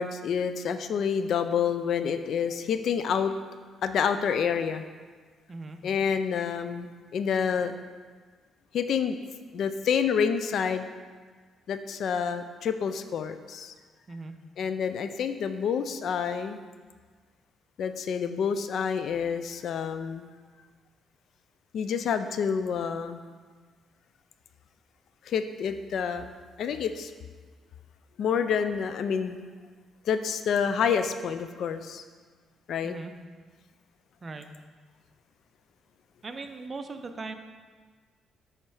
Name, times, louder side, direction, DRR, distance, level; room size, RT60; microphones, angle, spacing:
voice 1, 0.0-3.3 3.8-4.8 5.8-7.7 8.7-9.2 9.5-10.9 11.7-13.7 14.6-16.6 17.8-20.3 21.7-23.2 25.2-26.3 26.6-27.1 28.2-29.4 30.0-32.0 32.7-33.0, left 7 dB, 65° left, 9 dB, 0.4 m, -28 dB
voice 2, 5.5-5.8 14.1-14.4 32.8-33.1 34.2-34.5 36.2-37.4, right 3 dB, 35° right, 7 dB, 0.5 m, -39 dB
7.4 x 3.2 x 4.7 m, 1.5 s
cardioid pair, 90°, 0 cm